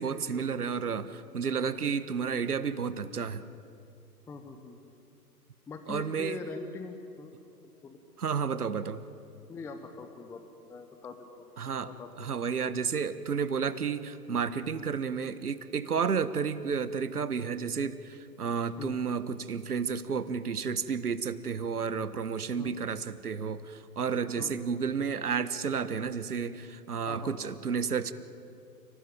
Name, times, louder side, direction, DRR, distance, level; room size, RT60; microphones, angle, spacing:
voice 1, 0.0-3.4 5.9-6.4 8.2-9.0 11.6-11.9 12.2-28.1, right 6 dB, 70° right, 14 dB, 1.5 m, -31 dB
voice 2, 4.3-4.8 5.7-7.3 7.8-8.0 9.5-10.4 10.7-12.3 18.8-19.0 22.6-22.8 24.4-24.6 27.1-27.3, left 4 dB, 5° left, 6 dB, 0.8 m, -43 dB
29.5 x 18.0 x 9.1 m, 2.6 s
figure-of-eight pair, 120°, 47 cm